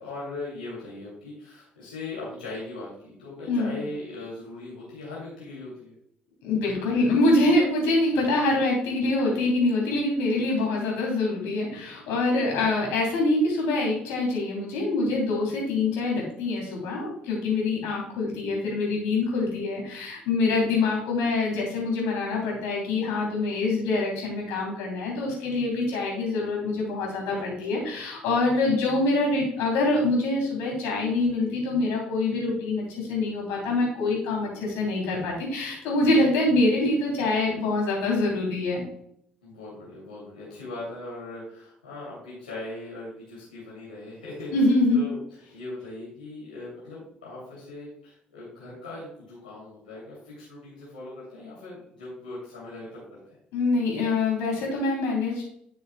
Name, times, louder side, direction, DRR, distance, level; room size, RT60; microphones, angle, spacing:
voice 1, 0.0-5.9 27.3-27.5 27.8-27.9 39.4-44.5 44.9-45.2 45.5-53.4, left 2 dB, 90° left, -7 dB, 2.7 m, -39 dB
voice 2, 3.5-3.8 6.4-38.8 44.5-45.1 53.5-55.4, left 2 dB, 70° left, -1 dB, 3.1 m, -25 dB
11.5 x 6.3 x 2.3 m, 0.69 s
hypercardioid pair, 50°, 5 cm